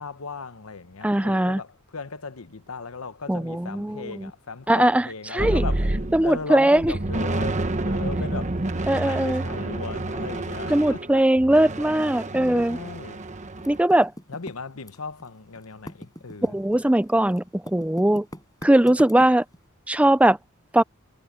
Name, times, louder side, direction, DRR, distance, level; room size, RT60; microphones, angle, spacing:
voice 1, 0.0-5.9 6.2-8.6 8.9-11.3 12.3-13.2 14.3-16.6, left 4 dB, 85° left, 1.1 m, -37 dB
voice 2, 1.0-1.6 3.3-4.3 4.7-5.1 5.3-5.6 6.1-6.9 8.9-9.4 10.7-12.8 13.7-14.1 16.4-17.4 17.7-18.2 18.6-19.4 19.9-20.4 20.7-20.8, right 1 dB, 5° right, 0.4 m, -20 dB
sound 1, 5.4-6.4 6.8-13.8, right 2 dB, 35° right, 1.1 m, -29 dB
Typing, 13.6-15.3 15.6-19.6, equal, 20° left, 6.4 m, -41 dB
head